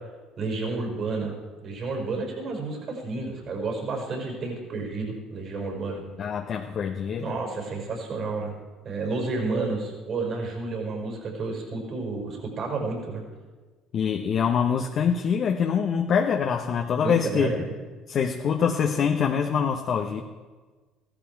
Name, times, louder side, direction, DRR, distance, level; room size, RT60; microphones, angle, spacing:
voice 1, 0.4-1.3 1.6-6.0 7.2-8.5 8.8-13.2 17.0-17.7, right 3 dB, 50° right, 1 dB, 5.4 m, -31 dB
voice 2, 6.2-7.4 13.9-17.5 18.1-20.2, left 7 dB, 55° left, 3 dB, 1.0 m, -24 dB
15.5 x 13.0 x 4.7 m, 1.4 s
supercardioid pair, 80°, 0 cm